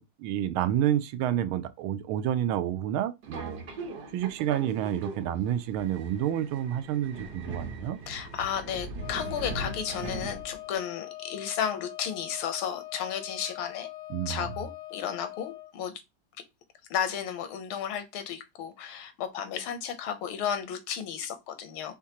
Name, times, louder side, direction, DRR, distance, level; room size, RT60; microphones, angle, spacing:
voice 1, 0.0-3.6 4.1-8.0 14.1-14.5, right 11 dB, 80° right, 1.4 m, -29 dB
Subway metro underground, 3.2-10.8, right 2 dB, 55° right, 1.4 m, -40 dB
voice 2, 8.1-13.9 14.3-16.0 16.9-22.0, left 8 dB, 80° left, 1.6 m, -33 dB
Wind instrument woodwind instrument, 9.0-15.7, left 16 dB, 65° left, 1.0 m, -43 dB
4.5 x 3.6 x 2.8 m
omnidirectional pair, 2.3 m